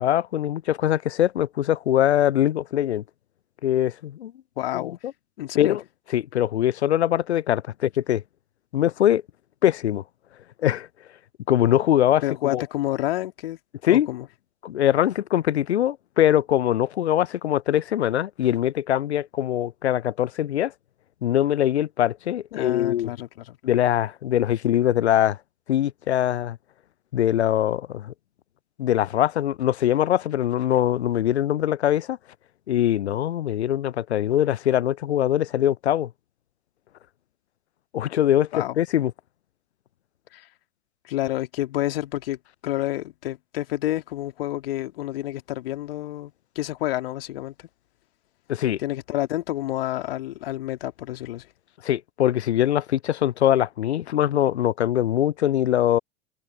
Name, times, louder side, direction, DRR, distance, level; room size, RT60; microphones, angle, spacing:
voice 1, 0.0-3.0 3.6-4.3 4.7-5.1 5.6-5.8 6.1-8.2 8.7-9.2 9.6-10.0 10.6-10.9 11.5-12.2 12.5-12.6 13.8-14.1 14.6-20.7 21.2-23.1 23.6-25.4 25.7-26.6 27.1-28.1 28.8-32.2 32.7-36.1 37.9-39.1 48.5-48.8 51.8-56.0, left 11 dB, 75° left, 0.5 m, -22 dB
voice 2, 4.6-5.0 5.4-5.8 12.2-13.6 13.9-14.3 22.5-23.6 38.5-38.8 40.3-40.5 41.0-47.5 48.8-51.5, left 14 dB, 60° left, 2.7 m, -29 dB
figure-of-eight pair, 90°, 33 cm